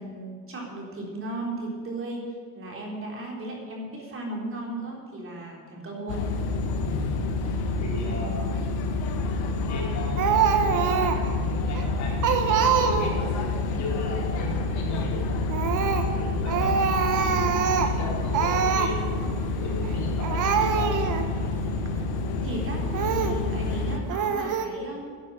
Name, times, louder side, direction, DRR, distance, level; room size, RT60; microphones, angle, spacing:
voice 1, 0.0-2.3 2.5-6.3 7.4-7.6 8.0-8.3 13.7-13.9 22.4-25.2, right 2 dB, 35° right, -1 dB, 3.6 m, -36 dB
sound 1, 6.1-24.0, left 3 dB, 85° left, 1.8 m, -28 dB
voice 2, 6.8-7.2 7.8-8.4 9.6-13.3 13.7-18.5 18.7-19.2 19.6-20.9, left 2 dB, 50° left, -3 dB, 4.8 m, -36 dB
Speech, 10.2-11.3 11.7-11.8 12.2-13.3 15.5-16.1 16.5-18.0 18.3-18.9 19.8-20.0 20.2-21.3 21.9-22.0 22.9-23.4 24.1-24.7, right 7 dB, 55° right, 1.5 m, -24 dB
11.0 x 10.5 x 9.0 m, 2.1 s
cardioid pair, 130°, 37 cm